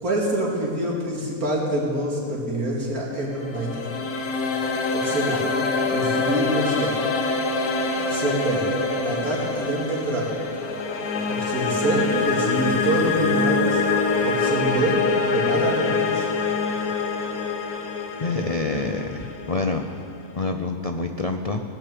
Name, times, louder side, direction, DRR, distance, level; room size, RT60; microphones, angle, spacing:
voice 1, 0.0-3.9 4.9-5.4 5.9-7.0 8.1-8.7 9.0-10.4 11.3-13.8 14.2-16.3, right 1 dB, 75° right, -3 dB, 2.9 m, -26 dB
sound 1, 3.2-20.3, left 4 dB, 80° left, 1.5 m, -25 dB
voice 2, 18.2-19.9 20.4-21.6, left 3 dB, 60° left, 5 dB, 0.3 m, -27 dB
18.5 x 6.7 x 7.7 m, 2.4 s
omnidirectional pair, 1.6 m